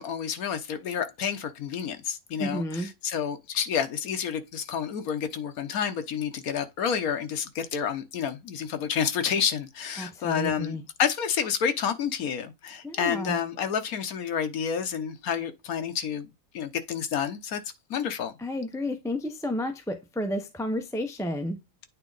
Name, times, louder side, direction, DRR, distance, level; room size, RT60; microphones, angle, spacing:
voice 1, 0.0-16.3 16.5-17.6 17.9-18.3, left 7 dB, 85° left, 1.4 m, -29 dB
voice 2, 2.4-2.9 10.0-10.8 12.8-13.4 18.4-21.6, left 1 dB, 5° left, 0.5 m, -31 dB
8.7 x 3.6 x 3.9 m
omnidirectional pair, 1.5 m